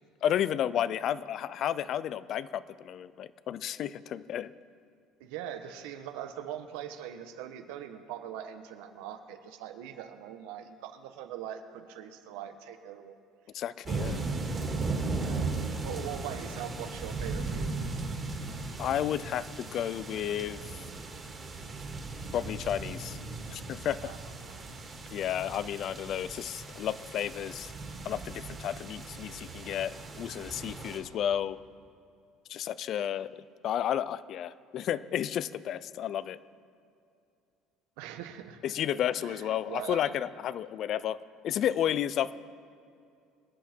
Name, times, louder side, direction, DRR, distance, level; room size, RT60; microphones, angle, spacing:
voice 1, 0.2-4.5 13.5-14.2 18.8-20.6 22.3-23.2 23.5-24.1 25.1-27.7 28.0-31.6 32.5-33.4 33.6-36.4 38.6-41.2 41.4-42.3, left 10 dB, 35° left, 16 dB, 0.4 m, -32 dB
voice 2, 5.2-13.1 15.2-17.7 24.0-24.9 38.0-38.8 39.2-40.1, right 10 dB, 85° right, 8 dB, 1.2 m, -42 dB
sound 1, 13.8-31.0, right 3 dB, 20° right, 2.0 m, -37 dB
24.0 x 10.5 x 4.5 m, 2.5 s
cardioid pair, 175°, 0 cm